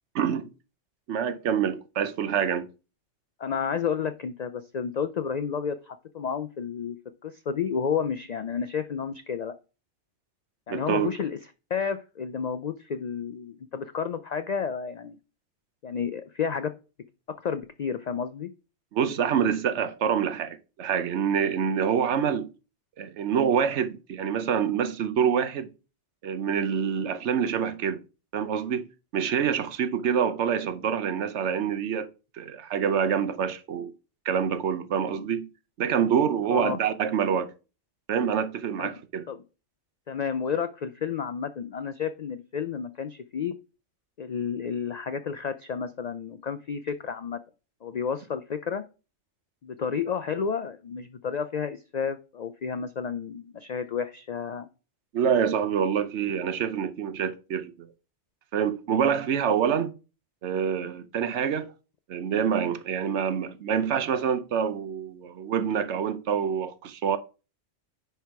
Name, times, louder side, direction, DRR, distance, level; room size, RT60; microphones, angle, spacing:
voice 1, 0.1-0.5 1.1-2.7 10.7-11.1 18.9-22.5 23.0-25.7 26.2-28.0 28.3-28.9 29.1-32.1 32.3-33.9 34.3-35.5 35.8-37.5 38.1-39.2 55.1-57.9 58.5-59.9 60.4-61.7 62.1-67.2, right 7 dB, 70° right, 1.0 m, -26 dB
voice 2, 3.4-7.0 7.2-9.5 10.7-11.4 11.7-15.2 15.8-16.7 17.4-18.5 36.5-36.8 38.8-39.0 39.3-39.4 40.1-43.5 44.2-47.4 47.8-48.8 49.6-54.7, left 6 dB, 70° left, 0.4 m, -31 dB
10.0 x 3.5 x 4.7 m
omnidirectional pair, 1.2 m